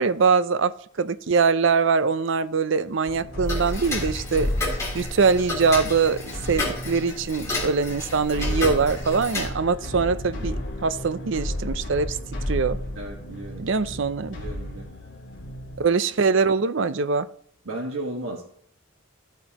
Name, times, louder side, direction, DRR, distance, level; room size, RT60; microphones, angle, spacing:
voice 1, 0.0-4.5 4.9-12.2 12.5-12.8 13.6-14.4 15.8-17.3, right 5 dB, 60° right, 14 dB, 0.5 m, -23 dB
sound 1, 3.0-15.8, left 1 dB, 65° left, 3.2 m, -33 dB
Tick-tock, 3.5-9.5, left 2 dB, 15° left, 3.5 m, -32 dB
voice 2, 12.9-13.7 14.3-14.9 17.6-18.4, right 1 dB, 85° right, -2 dB, 1.5 m, -34 dB
15.0 x 8.0 x 3.0 m, 0.66 s
head